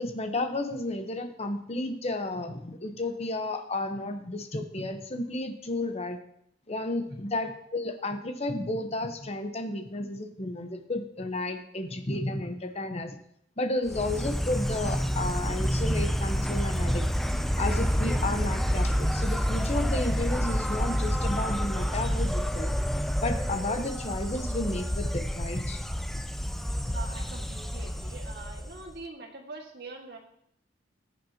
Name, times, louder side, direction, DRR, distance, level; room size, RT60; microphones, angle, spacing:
voice 1, 0.0-6.2 6.7-13.2 13.6-17.1 17.6-22.7 23.2-25.9 26.1-26.2 26.9-27.0, left 2 dB, 35° left, 6 dB, 0.9 m, -32 dB
Insect, 13.9-29.0, equal, ahead, 0.4 m, -29 dB
voice 2, 26.9-30.2, right 3 dB, 60° right, 0 dB, 1.9 m, -43 dB
15.0 x 8.5 x 2.9 m, 0.70 s
head